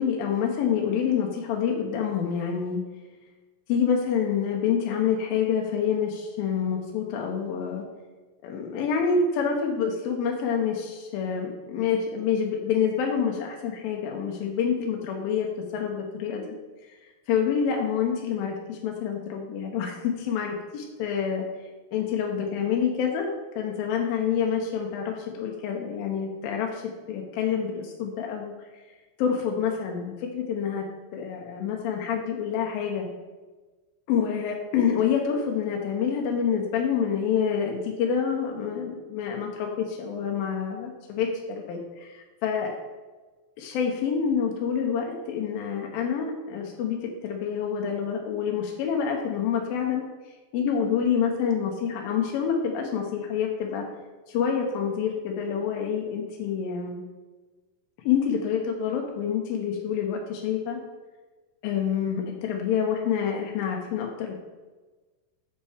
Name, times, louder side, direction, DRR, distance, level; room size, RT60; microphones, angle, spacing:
voice 1, 0.0-2.8 3.7-7.9 8.4-15.5 15.7-16.5 17.3-21.5 21.9-26.8 27.1-28.5 29.2-30.9 31.1-33.1 34.1-42.7 43.6-50.0 50.5-53.9 54.3-57.1 58.1-60.8 61.6-64.3, left 7 dB, 85° left, 0 dB, 2.7 m, -27 dB
7.5 x 5.5 x 4.9 m, 1.3 s
omnidirectional pair, 4.1 m